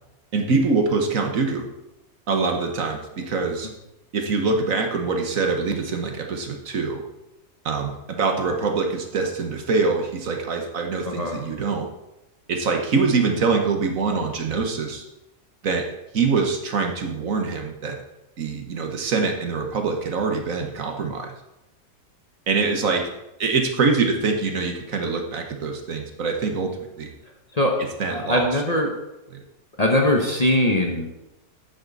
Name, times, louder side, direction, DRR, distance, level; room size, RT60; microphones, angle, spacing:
voice 1, 0.3-1.7 2.3-3.7 4.1-7.0 7.6-11.9 12.5-15.0 15.6-15.9 16.1-18.0 18.4-21.4 22.5-23.0 23.4-27.1 28.0-28.5 29.3-29.4, right 4 dB, 60° right, 4 dB, 1.5 m, -24 dB
voice 2, 11.0-11.4 27.5-27.7 28.1-28.9 29.8-31.0, left 1 dB, 25° left, 1 dB, 1.1 m, -21 dB
11.0 x 9.1 x 4.1 m, 0.93 s
omnidirectional pair, 1.7 m